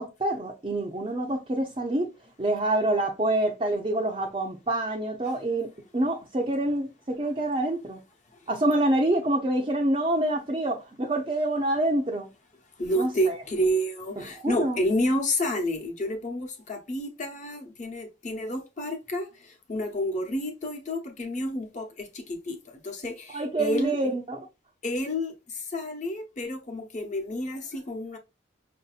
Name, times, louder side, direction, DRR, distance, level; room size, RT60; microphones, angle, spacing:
voice 1, 0.0-2.1 2.4-5.7 5.9-8.0 8.5-12.3 13.0-13.4 14.2-14.8 23.3-24.5, right 1 dB, 30° right, 0.5 m, -26 dB
voice 2, 12.8-24.0 24.8-28.2, equal, 40° left, 0.9 m, -30 dB
5.7 x 2.7 x 2.4 m
head